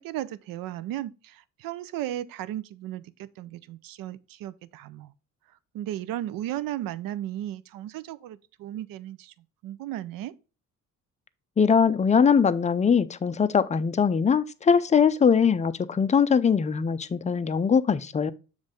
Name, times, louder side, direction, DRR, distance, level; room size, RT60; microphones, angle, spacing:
voice 1, 0.0-5.1 5.7-9.3 9.6-10.3, right 13 dB, 90° right, 0.5 m, -35 dB
voice 2, 11.6-18.3, left 6 dB, 20° left, 0.4 m, -21 dB
7.2 x 3.3 x 5.1 m
cardioid pair, 110°, 33 cm